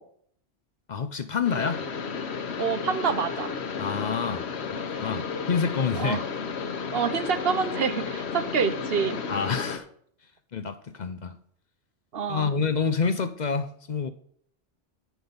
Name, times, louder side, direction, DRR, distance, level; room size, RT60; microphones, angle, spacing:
voice 1, 0.9-1.8 3.8-6.2 9.3-9.8 10.5-11.4 12.3-14.1, left 5 dB, 50° left, 10 dB, 0.7 m, -28 dB
sound 1, 1.4-9.8, left 5 dB, 90° left, 1.2 m, -33 dB
voice 2, 2.6-3.5 6.0-6.3 6.9-9.2 12.1-12.5, right 6 dB, 65° right, 11 dB, 1.0 m, -27 dB
9.5 x 6.2 x 5.1 m, 0.63 s
omnidirectional pair, 1.1 m